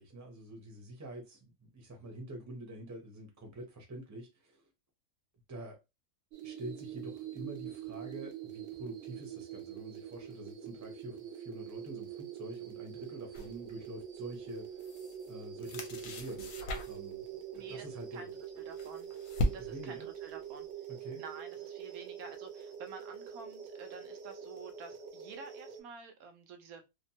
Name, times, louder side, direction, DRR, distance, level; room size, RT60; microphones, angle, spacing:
voice 1, 0.0-4.7 5.5-5.8 6.4-15.0 15.2-18.3 19.6-20.1 20.9-21.2, right 1 dB, 15° right, 0.6 m, -46 dB
sound 1, 6.3-25.8, right 9 dB, 65° right, 0.8 m, -45 dB
sound 2, 13.3-13.6 14.5-15.3 15.6-17.1 18.3-20.0, left 1 dB, 75° left, 1.0 m, -37 dB
voice 2, 17.5-17.9 18.1-18.3 18.6-19.1 19.5-20.7 21.2-26.8, right 5 dB, 80° right, 1.1 m, -49 dB
2.8 x 2.1 x 2.7 m
omnidirectional pair, 1.5 m